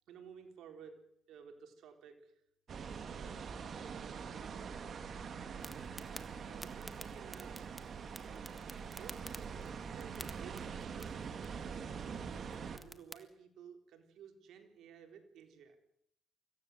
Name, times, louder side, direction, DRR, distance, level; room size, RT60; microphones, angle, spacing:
voice 1, 0.1-2.3 2.8-4.8 5.7-6.0 6.4-7.9 8.2-9.3 9.6-11.2 12.7-15.8, right 7 dB, 80° right, 5 dB, 3.7 m, -55 dB
sound 1, 2.7-12.8, right 6 dB, 55° right, 2.3 m, -44 dB
sound 2, 5.6-13.2, equal, ahead, 1.7 m, -53 dB
25.5 x 16.0 x 7.9 m, 0.73 s
cardioid pair, 90°, 0 cm